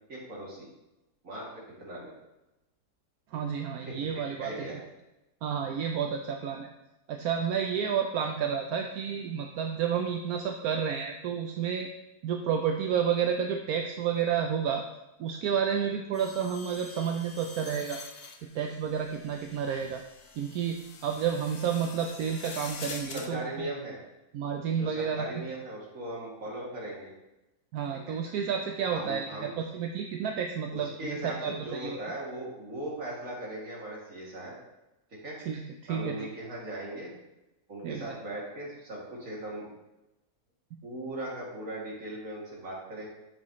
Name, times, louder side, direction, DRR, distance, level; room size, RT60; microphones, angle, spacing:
voice 1, 0.1-0.7 1.2-1.5 1.8-2.1 3.9-4.1 4.4-4.8 23.1-24.0 24.7-27.1 28.1-28.2 28.9-29.5 30.7-34.5 35.2-35.4 35.9-37.1 37.7-39.7 40.8-43.1, right 1 dB, 55° right, -5 dB, 2.9 m, -38 dB
voice 2, 3.3-4.7 5.4-6.7 7.1-11.9 12.2-14.8 15.2-18.0 18.5-20.0 20.4-23.7 24.3-25.4 27.7-32.0 35.4-36.3 37.8-38.2, right 7 dB, 70° right, 4 dB, 1.1 m, -31 dB
sound 1, 16.1-23.3, left 4 dB, 50° left, 0.8 m, -46 dB
8.7 x 7.3 x 3.1 m, 0.98 s
omnidirectional pair, 1.8 m